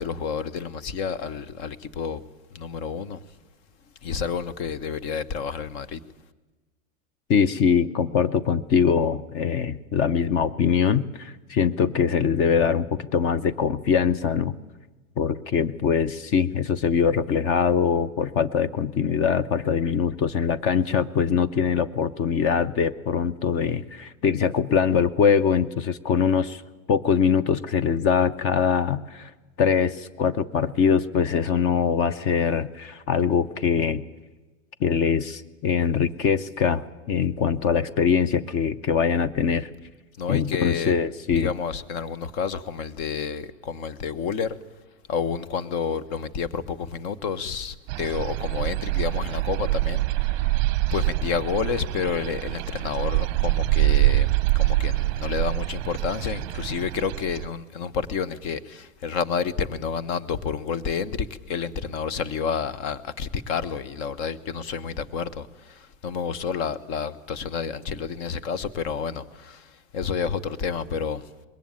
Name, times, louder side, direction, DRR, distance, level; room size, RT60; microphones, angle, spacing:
voice 1, 0.0-2.2 2.5-3.2 4.0-6.0 40.2-40.9 41.3-44.6 45.1-50.5 50.9-69.7 69.9-71.2, left 6 dB, 50° left, 1.3 m, -30 dB
voice 2, 7.3-14.6 15.2-26.6 26.9-29.3 29.6-34.0 34.8-39.7 40.3-41.5, left 7 dB, 35° left, 0.7 m, -23 dB
sound 1, 47.9-57.5, right 18 dB, 40° right, 0.7 m, -25 dB
20.5 x 17.5 x 9.1 m
hypercardioid pair, 120°, 41 cm